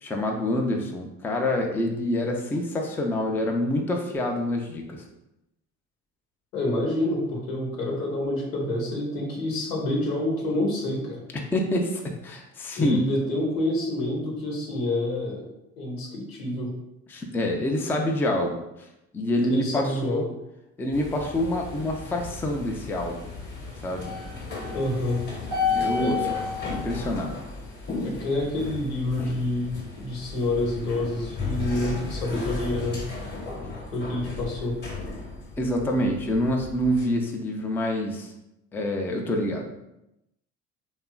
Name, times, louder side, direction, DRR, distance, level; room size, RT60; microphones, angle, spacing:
voice 1, 0.0-5.0 11.3-13.0 17.1-18.9 19.1-20.3 20.8-23.3 23.8-24.1 25.6-26.3 26.7-27.4 35.6-38.3 38.7-39.7, left 1 dB, 5° left, 2 dB, 0.3 m, -27 dB
voice 2, 6.5-11.2 12.8-15.5 15.8-16.7 19.5-20.3 24.7-25.2 26.0-26.4 28.0-33.0 33.9-34.8, left 1 dB, 90° left, -1 dB, 0.8 m, -28 dB
sound 1, 20.9-37.1, left 4 dB, 25° left, 0.9 m, -34 dB
2.8 x 2.4 x 2.3 m, 0.87 s
hypercardioid pair, 60°, 39 cm